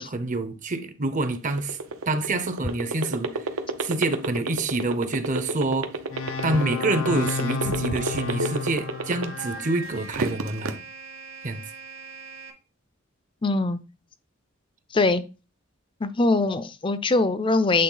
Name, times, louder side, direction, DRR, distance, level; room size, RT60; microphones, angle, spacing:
voice 1, 0.0-1.8 2.1-3.4 3.8-5.9 6.4-10.8 11.4-11.6, right 2 dB, 40° right, 0.6 m, -27 dB
sound 1, 1.4-9.6 10.0-10.7, right 3 dB, 90° right, 0.8 m, -28 dB
sound 2, 2.9-12.5, right 1 dB, 70° right, 1.6 m, -44 dB
sound 3, 6.1-9.7, left 4 dB, 80° left, 0.8 m, -31 dB
voice 2, 13.4-13.8 14.9-15.2 16.0-17.8, left 2 dB, 25° left, 0.4 m, -22 dB
8.4 x 3.5 x 3.9 m
head